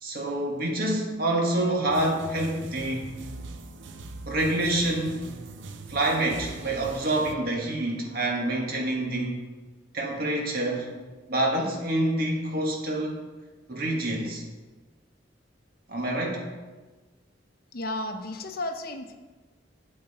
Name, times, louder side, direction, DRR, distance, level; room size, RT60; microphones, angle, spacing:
voice 1, 0.0-3.1 4.3-5.3 5.9-9.4 9.9-10.9 11.3-13.2 13.7-14.4 15.9-16.5, right 1 dB, 50° right, -1 dB, 1.7 m, -27 dB
sound 1, 1.9-7.4, right 3 dB, 70° right, 0.7 m, -41 dB
voice 2, 17.7-19.1, left 1 dB, 50° left, 6 dB, 0.8 m, -33 dB
8.6 x 8.0 x 4.2 m, 1.3 s
head